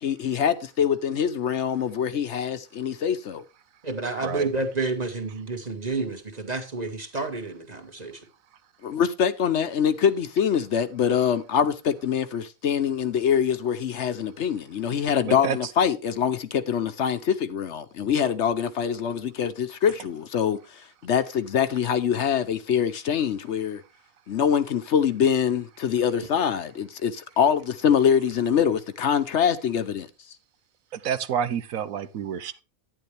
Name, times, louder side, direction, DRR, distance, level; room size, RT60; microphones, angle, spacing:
voice 1, 0.0-3.4 8.8-23.8 24.3-30.1, left 8 dB, 65° left, 1.0 m, -24 dB
voice 2, 3.8-8.2, right 3 dB, 30° right, 1.8 m, -30 dB
voice 3, 15.2-15.6 30.9-32.5, right 8 dB, 85° right, 1.2 m, -28 dB
11.0 x 9.9 x 3.3 m
omnidirectional pair, 1.4 m